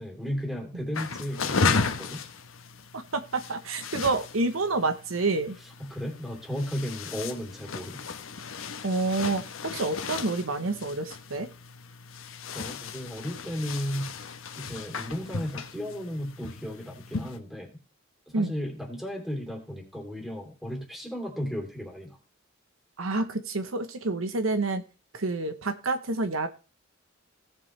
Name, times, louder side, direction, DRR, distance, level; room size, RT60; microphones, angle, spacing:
voice 1, 0.0-2.2 5.8-8.0 12.5-14.3 14.6-17.7 18.3-22.2, equal, ahead, 1 dB, 3.1 m, -34 dB
sound 1, 0.9-17.4, left 4 dB, 75° left, 1.1 m, -35 dB
voice 2, 2.9-5.6 8.8-11.5 18.3-18.5 23.0-24.8 25.1-26.5, right 3 dB, 75° right, 9 dB, 1.0 m, -28 dB
17.0 x 7.7 x 3.3 m, 0.32 s
head